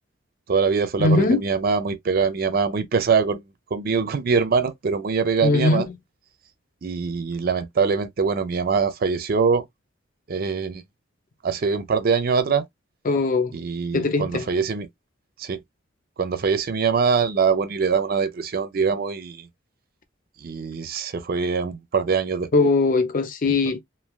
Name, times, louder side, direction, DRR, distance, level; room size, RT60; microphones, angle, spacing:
voice 1, 0.5-3.4 3.7-5.9 6.8-9.6 10.3-10.8 11.4-12.6 13.5-14.9 15.4-15.6 16.2-19.5 20.4-22.7, right 5 dB, 50° right, 0.5 m, -23 dB
voice 2, 1.0-1.4 5.4-5.8 13.1-13.5 13.9-14.4 22.5-23.8, left 3 dB, 45° left, 0.5 m, -20 dB
3.1 x 2.2 x 2.3 m
head